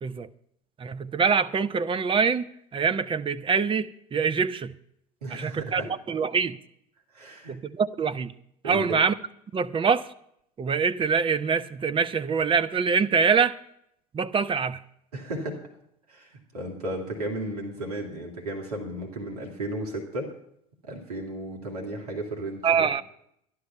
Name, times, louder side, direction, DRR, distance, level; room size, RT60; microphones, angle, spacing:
voice 1, 0.8-2.5 2.7-4.7 5.3-5.8 6.1-6.6 7.5-8.3 8.6-9.1 9.5-10.1 10.6-13.6 14.1-14.8 22.6-23.0, right 5 dB, 25° right, 0.7 m, -24 dB
voice 2, 5.2-5.9 7.1-7.6 8.6-9.0 15.1-15.6 16.1-20.3 20.8-22.9, right 1 dB, 85° right, 2.1 m, -34 dB
12.0 x 11.5 x 5.5 m
hypercardioid pair, 75°, 19 cm